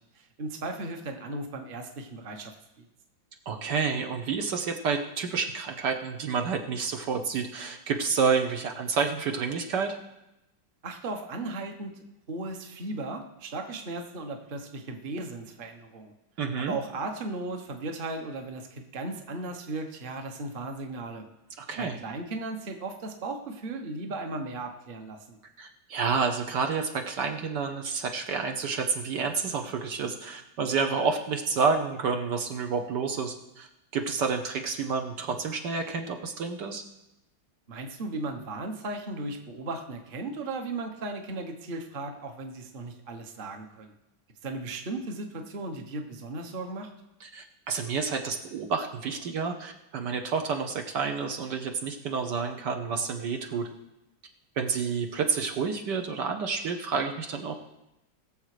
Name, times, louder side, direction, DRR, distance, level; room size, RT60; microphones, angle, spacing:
voice 1, 0.1-2.5 10.8-16.1 16.6-21.2 21.8-25.4 37.7-43.9 44.4-46.9, right 2 dB, 35° right, 5 dB, 1.1 m, -36 dB
voice 2, 3.5-10.0 16.4-16.8 21.6-22.0 25.6-36.8 47.2-53.7 54.6-57.5, right 5 dB, 65° right, 4 dB, 1.4 m, -29 dB
20.5 x 7.2 x 5.0 m, 0.91 s
omnidirectional pair, 2.1 m